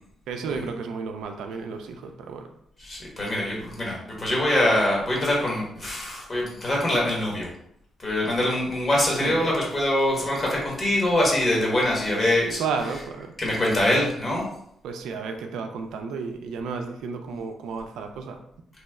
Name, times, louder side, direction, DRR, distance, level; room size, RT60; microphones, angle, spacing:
voice 1, 0.3-2.5 9.2-9.4 12.6-13.3 14.8-18.4, right 5 dB, 85° right, 5 dB, 0.3 m, -32 dB
voice 2, 2.8-7.5 8.0-12.6 13.4-14.4, left 1 dB, 35° left, -3 dB, 1.3 m, -24 dB
3.0 x 2.1 x 3.4 m, 0.73 s
cardioid pair, 85°, 0 cm